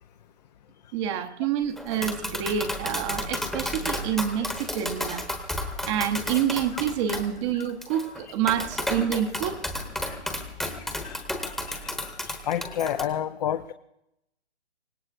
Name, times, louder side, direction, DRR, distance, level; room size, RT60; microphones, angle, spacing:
voice 1, 0.9-5.3 5.9-9.6, right 9 dB, 25° right, 6 dB, 1.0 m, -27 dB
Tap, 1.8-13.0, left 1 dB, ahead, 1.1 m, -33 dB
voice 2, 10.8-13.7, left 10 dB, 40° left, 9 dB, 0.6 m, -32 dB
25.0 x 18.5 x 2.6 m, 0.84 s
hypercardioid pair, 135°, 33 cm